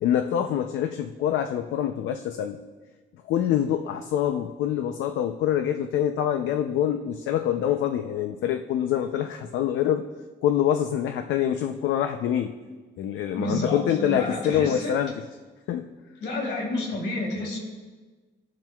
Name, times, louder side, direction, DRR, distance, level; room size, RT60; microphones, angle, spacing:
voice 1, 0.0-2.6 3.3-10.0 10.4-12.6 13.0-15.2 15.7-15.9, left 10 dB, 90° left, 7 dB, 0.6 m, -25 dB
voice 2, 13.3-14.9 16.2-17.6, left 1 dB, 70° left, -1 dB, 3.1 m, -29 dB
21.0 x 7.5 x 2.4 m, 1.3 s
cardioid pair, 135°, 19 cm